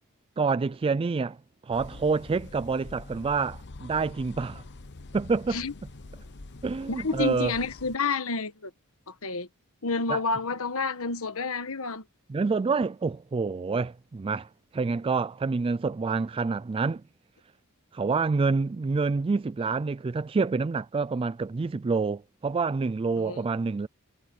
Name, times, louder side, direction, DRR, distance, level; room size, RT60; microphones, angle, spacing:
voice 1, 0.4-1.4 1.6-4.6 5.1-5.6 6.6-7.5 10.1-10.2 12.3-17.0 17.9-23.9, right 4 dB, 25° right, 0.3 m, -27 dB
sound 1, 1.7-8.0, left 2 dB, 55° left, 1.0 m, -45 dB
voice 2, 6.9-8.7 9.1-9.5 9.8-12.0 23.2-23.4, left 4 dB, 70° left, 1.4 m, -29 dB
head